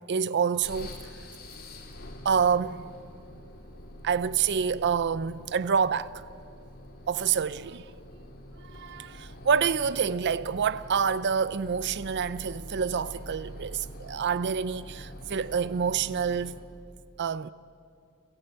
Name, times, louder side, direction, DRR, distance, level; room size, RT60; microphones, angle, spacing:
voice 1, 0.1-1.0 2.2-2.9 4.0-6.2 7.1-7.8 8.7-16.6 17.2-17.5, right 6 dB, 50° right, 0.5 m, -27 dB
sound 1, 0.6-16.8, equal, 45° left, 2.8 m, -45 dB
29.5 x 15.5 x 8.9 m
head